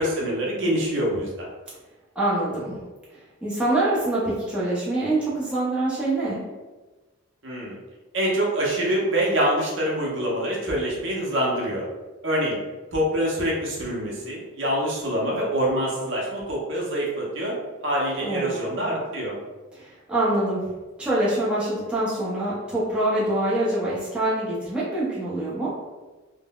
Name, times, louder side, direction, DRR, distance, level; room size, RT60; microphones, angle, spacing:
voice 1, 0.0-1.5 7.4-7.8 8.1-11.8 12.2-12.6 12.9-17.5 17.8-19.4, right 1 dB, 60° right, -4 dB, 0.7 m, -25 dB
voice 2, 2.2-2.8 3.1-6.4 18.2-19.0 19.7-20.6 21.0-25.7, right 1 dB, 5° right, -9 dB, 0.5 m, -25 dB
3.6 x 2.0 x 2.3 m, 1.2 s
head